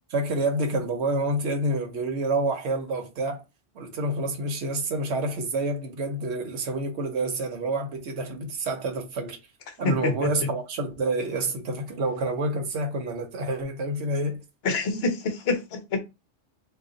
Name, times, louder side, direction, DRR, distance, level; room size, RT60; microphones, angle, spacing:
voice 1, 0.1-3.4 3.7-9.4 9.8-14.4, right 2 dB, 70° right, 1.0 m, -28 dB
voice 2, 9.8-10.3 14.6-16.0, left 3 dB, 60° left, 0.9 m, -26 dB
2.5 x 2.5 x 3.7 m
omnidirectional pair, 1.2 m